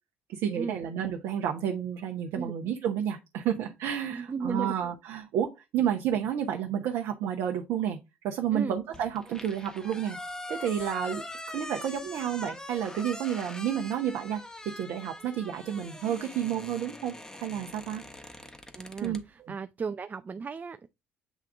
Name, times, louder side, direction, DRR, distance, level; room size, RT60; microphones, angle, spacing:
voice 1, 0.3-8.0 8.2-10.2 10.5-18.0 19.0-19.5, right 9 dB, 60° right, 0.8 m, -31 dB
voice 2, 4.1-4.7 8.5-8.7 18.8-20.9, right 5 dB, 30° right, 0.5 m, -35 dB
sound 1, 8.9-19.2, left 1 dB, 10° left, 1.1 m, -43 dB
8.2 x 3.6 x 3.4 m
figure-of-eight pair, 50°, 6 cm